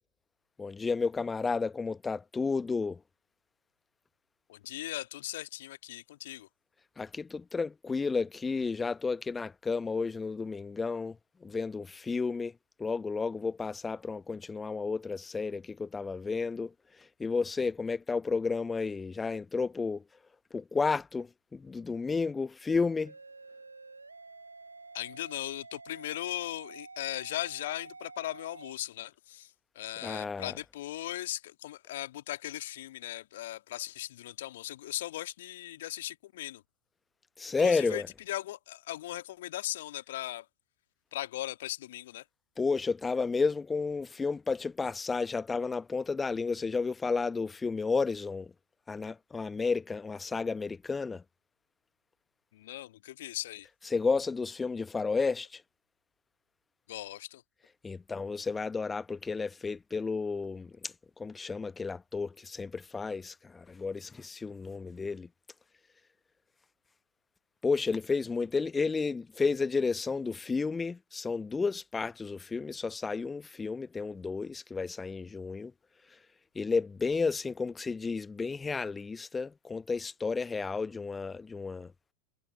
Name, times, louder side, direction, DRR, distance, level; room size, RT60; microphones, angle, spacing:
voice 1, 0.6-3.0 7.0-12.5 12.8-20.0 20.5-23.1 30.0-30.5 37.4-38.1 42.6-48.5 48.9-51.2 53.9-55.6 57.8-65.3 67.6-75.7 76.5-81.9, left 4 dB, 15° left, 1.0 m, -32 dB
voice 2, 4.5-6.5 24.9-36.6 37.6-40.5 41.1-42.3 52.5-53.7 56.9-57.4, left 14 dB, 55° left, 2.0 m, -38 dB
sound 1, 23.0-28.7, right 3 dB, 80° right, 1.0 m, -49 dB
figure-of-eight pair, 90°, 0 cm